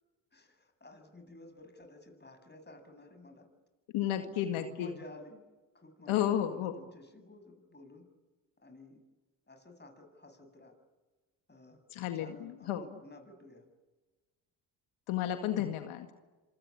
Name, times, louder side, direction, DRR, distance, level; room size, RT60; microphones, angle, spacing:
voice 1, 0.3-3.5 4.2-5.4 5.7-8.1 8.6-9.0 9.5-10.7 11.5-11.8 12.1-13.7, left 2 dB, 20° left, 6 dB, 7.7 m, -53 dB
voice 2, 3.9-5.0 6.1-6.7 11.9-12.8 15.1-16.1, left 11 dB, 75° left, 7 dB, 2.1 m, -32 dB
27.0 x 25.0 x 8.8 m, 1.2 s
hypercardioid pair, 60°, 50 cm